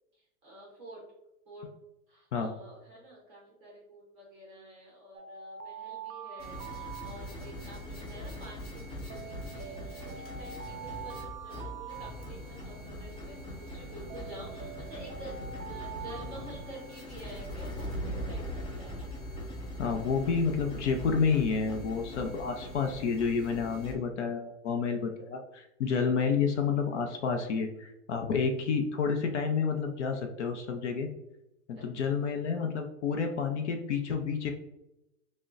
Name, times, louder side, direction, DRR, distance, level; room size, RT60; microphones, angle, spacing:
voice 1, 0.1-1.0 1.5-1.7 2.1-19.0 31.8-31.9, right 1 dB, 15° right, -5 dB, 0.6 m, -49 dB
Alarm, 5.1-7.8 9.1-12.8 14.1-17.3, right 8 dB, 85° right, 0.5 m, -45 dB
sound 1, 6.4-23.9, equal, 35° left, 1.2 m, -41 dB
voice 2, 19.8-31.1 31.7-34.5, left 5 dB, 55° left, 4 dB, 0.5 m, -30 dB
6.2 x 2.1 x 2.4 m, 0.90 s
supercardioid pair, 170°, 44 cm